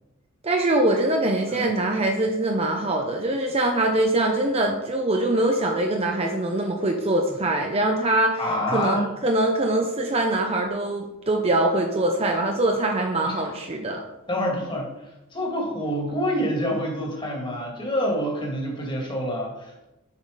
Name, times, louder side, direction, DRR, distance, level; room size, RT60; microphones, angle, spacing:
voice 1, 0.4-8.4 8.7-14.0, right 1 dB, 30° right, 2 dB, 0.7 m, -23 dB
voice 2, 8.4-9.0 13.2-13.4 14.3-19.9, equal, 25° left, -1 dB, 2.0 m, -27 dB
7.3 x 5.8 x 5.0 m, 0.97 s
head